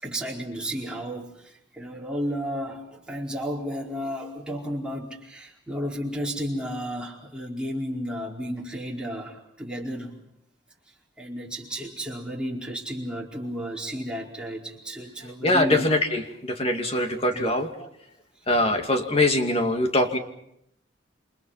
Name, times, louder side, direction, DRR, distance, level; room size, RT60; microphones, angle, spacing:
voice 1, 0.0-10.2 11.2-15.8 17.3-17.5 18.5-18.7, equal, 5° right, -3 dB, 4.7 m, -33 dB
voice 2, 15.4-16.0 16.4-17.7 18.5-20.2, left 1 dB, 30° left, 5 dB, 2.5 m, -22 dB
28.5 x 27.0 x 5.9 m, 0.77 s
head